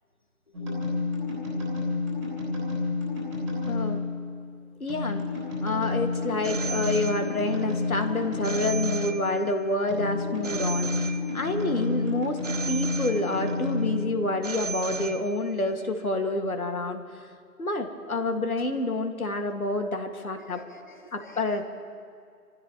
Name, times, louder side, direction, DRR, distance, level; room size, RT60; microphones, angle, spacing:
voice 1, 0.5-0.8 1.5-2.0 18.2-18.3 18.6-18.7 20.1-21.6, left 2 dB, 30° left, 3 dB, 1.5 m, -51 dB
sound 1, 0.5-15.0, left 3 dB, 10° right, 3.0 m, -30 dB
voice 2, 3.7-4.0 4.8-5.2 5.6-12.4 12.7-17.0 17.6-20.6 21.1-21.6, left 2 dB, 60° left, 4 dB, 2.1 m, -28 dB
Telephone, 6.4-7.7 8.4-9.7 10.4-11.7 12.4-13.7 14.4-15.7, right 6 dB, 50° right, 0.7 m, -36 dB
28.5 x 15.5 x 3.1 m, 2.3 s
figure-of-eight pair, 175°, 47 cm